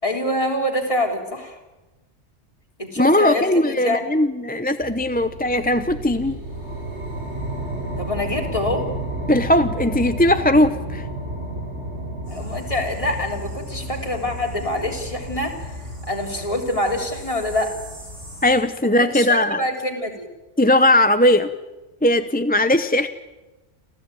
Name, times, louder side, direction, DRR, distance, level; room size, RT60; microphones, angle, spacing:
voice 1, 0.0-1.6 2.8-4.0 8.0-8.9 12.3-15.7 16.1-17.8 19.0-20.3, left 1 dB, 30° left, 2 dB, 3.5 m, -25 dB
voice 2, 3.0-6.4 9.3-11.1 18.4-19.6 20.6-21.5 22.0-23.1, left 1 dB, 10° left, 10 dB, 0.6 m, -18 dB
sound 1, 4.8-17.3, right 1 dB, 70° right, 5.2 m, -32 dB
sound 2, 12.2-18.6, equal, 90° right, 6.8 m, -40 dB
28.5 x 15.0 x 9.0 m, 1.1 s
omnidirectional pair, 1.2 m